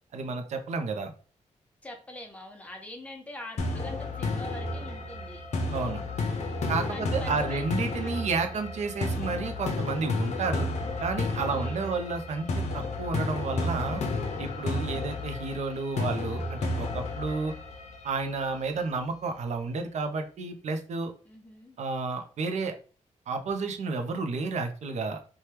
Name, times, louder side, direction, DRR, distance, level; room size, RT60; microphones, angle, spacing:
voice 1, 0.1-1.1 5.7-6.0 6.7-10.7 11.0-14.0 14.4-17.5 18.0-21.1 21.8-22.7 23.3-25.3, right 4 dB, 65° right, 6 dB, 0.5 m, -31 dB
voice 2, 1.8-5.4 6.9-7.6 8.0-8.3 11.5-11.9 21.3-21.8, left 1 dB, 10° left, 2 dB, 0.5 m, -44 dB
sound 1, 3.6-18.5, left 2 dB, 60° left, 0.6 m, -32 dB
2.9 x 2.2 x 3.3 m, 0.38 s
wide cardioid pair, 175°, 13 cm